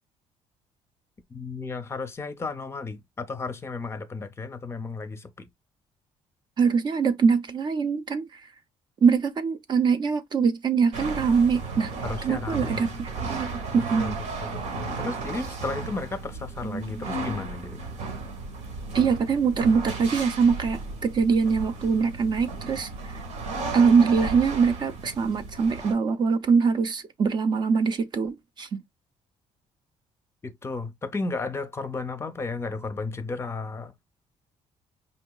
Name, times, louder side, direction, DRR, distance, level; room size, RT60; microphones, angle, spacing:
voice 1, 1.3-5.5 12.0-12.9 13.7-14.1 14.4-17.9 30.4-33.9, left 3 dB, 20° left, 0.6 m, -34 dB
voice 2, 6.6-8.4 9.0-11.9 12.2-14.2 18.9-23.2 23.7-28.8, right 5 dB, 40° right, 0.6 m, -23 dB
sound 1, 10.9-25.9, right 3 dB, 85° right, 1.6 m, -34 dB
5.3 x 2.8 x 2.2 m
cardioid pair, 130°, 12 cm